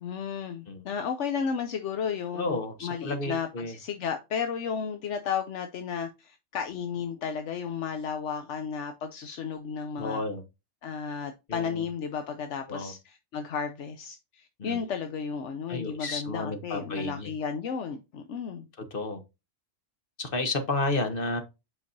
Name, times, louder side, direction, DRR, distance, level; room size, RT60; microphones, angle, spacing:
voice 1, 0.0-10.2 10.8-18.7, left 6 dB, 80° left, 1.0 m, -33 dB
voice 2, 2.3-3.7 10.0-10.4 11.5-11.9 12.7-12.9 14.6-14.8 15.7-17.3 18.9-19.2 20.2-21.4, left 2 dB, 50° left, 1.4 m, -31 dB
7.9 x 5.2 x 2.7 m
omnidirectional pair, 1.2 m